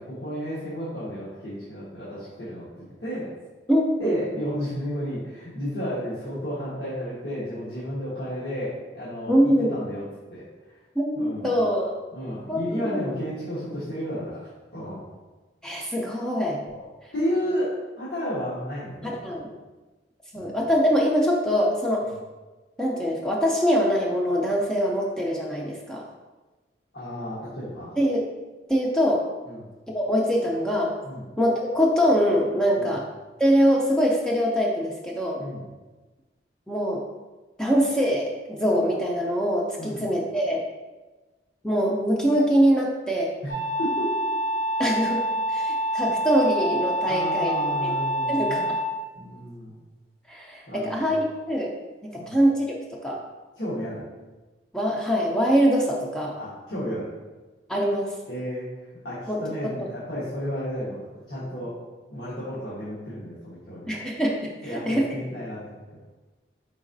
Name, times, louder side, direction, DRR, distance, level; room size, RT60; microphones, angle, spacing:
voice 1, 0.0-3.3 4.0-10.0 10.3-10.8 11.2-11.5 12.1-15.0 16.7-16.8 17.1-19.1 20.3-20.5 26.9-27.9 29.5-29.7 31.0-31.2 32.8-32.9 35.4-35.6 39.8-40.0 43.4-44.1 47.1-48.6 49.1-49.8 50.7-51.2 52.1-52.4 53.5-54.1 56.4-57.1 58.3-58.7 59.0-61.7 62.1-64.0 64.6-65.8, equal, 80° left, -11 dB, 1.1 m, -32 dB
voice 2, 3.7-4.2 9.3-9.7 11.0-11.9 12.5-13.0 15.6-16.6 19.0-19.5 20.3-22.1 22.8-26.0 28.0-28.2 28.7-29.3 29.9-30.9 31.4-33.0 33.4-35.4 36.7-37.0 37.6-40.6 41.6-43.3 44.8-45.2 45.5-47.9 48.3-48.6 50.3-51.2 51.5-51.7 52.0-52.7 53.0-53.2 54.7-56.4 57.7-58.1 59.3-59.7 63.9-65.1, equal, 5° left, -3 dB, 0.4 m, -23 dB
sound 1, 43.5-48.9, right 1 dB, 55° right, 0.6 m, -26 dB
4.4 x 3.9 x 2.5 m, 1.2 s
head